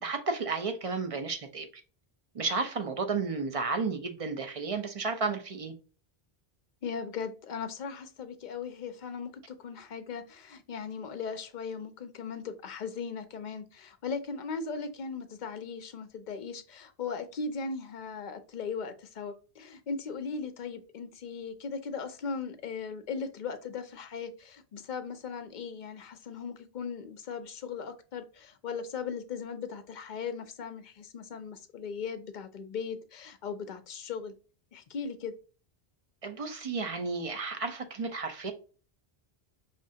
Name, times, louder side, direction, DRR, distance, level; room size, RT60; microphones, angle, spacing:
voice 1, 0.0-1.7 2.3-5.7 36.2-38.5, right 4 dB, 40° right, 0.6 m, -32 dB
voice 2, 6.8-34.3 34.7-35.3, left 5 dB, 55° left, 0.7 m, -38 dB
5.0 x 3.2 x 2.7 m
omnidirectional pair, 1.0 m